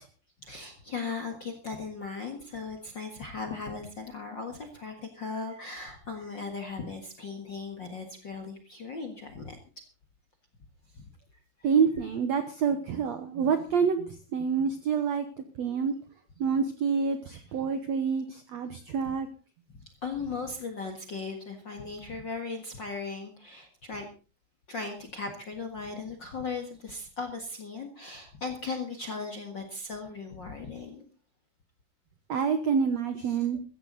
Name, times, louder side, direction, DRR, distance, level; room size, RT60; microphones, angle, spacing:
voice 1, 0.4-9.6 10.9-11.0 17.3-17.6 19.7-24.0 24.7-31.0 33.2-33.5, left 4 dB, 45° left, 6 dB, 1.5 m, -38 dB
voice 2, 11.6-15.2 15.6-15.9 16.4-19.3 32.3-33.6, right 6 dB, 75° right, 9 dB, 1.6 m, -27 dB
15.5 x 14.0 x 4.0 m, 0.36 s
omnidirectional pair, 4.5 m